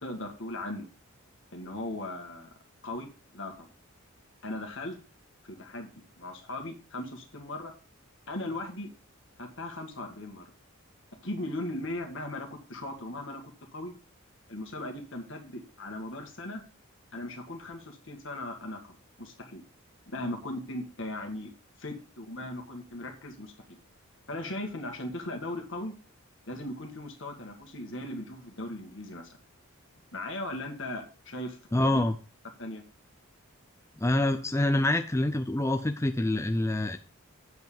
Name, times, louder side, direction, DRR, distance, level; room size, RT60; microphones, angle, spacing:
voice 1, 0.0-0.9 1.5-2.5 2.8-3.7 4.4-5.0 5.5-7.7 8.3-8.9 9.4-10.5 11.2-13.4 13.7-13.9 14.5-16.6 17.1-19.6 20.1-21.5 21.8-23.5 24.3-25.9 26.5-29.3 30.1-32.0 32.6-32.8, left 1 dB, 55° left, 3 dB, 1.8 m, -38 dB
voice 2, 31.7-32.1 34.0-37.0, left 1 dB, 10° left, 8 dB, 0.4 m, -26 dB
8.0 x 5.4 x 7.0 m, 0.35 s
head